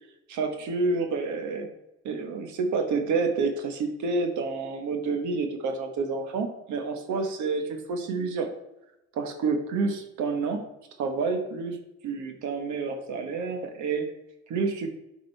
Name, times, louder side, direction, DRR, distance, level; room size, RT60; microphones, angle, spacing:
voice 1, 0.3-1.7 2.0-8.5 9.1-10.7 11.0-11.8 12.0-14.1 14.5-14.9, right 4 dB, 75° right, 5 dB, 1.2 m, -29 dB
8.6 x 5.2 x 3.3 m, 0.89 s
cardioid pair, 90°, 30 cm